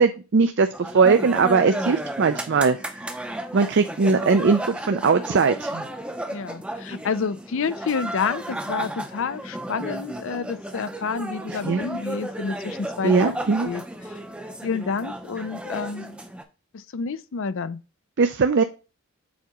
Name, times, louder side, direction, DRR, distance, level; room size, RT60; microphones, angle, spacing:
voice 1, 0.0-2.8 3.5-5.8 11.5-11.8 13.0-13.7 18.2-18.6, right 4 dB, 50° right, 0.4 m, -20 dB
sound 1, 0.7-16.4, right 1 dB, 5° right, 0.6 m, -33 dB
voice 2, 6.3-13.1 13.6-13.8 14.6-16.2 16.7-17.8, left 5 dB, 60° left, 0.5 m, -29 dB
7.2 x 4.6 x 3.0 m
head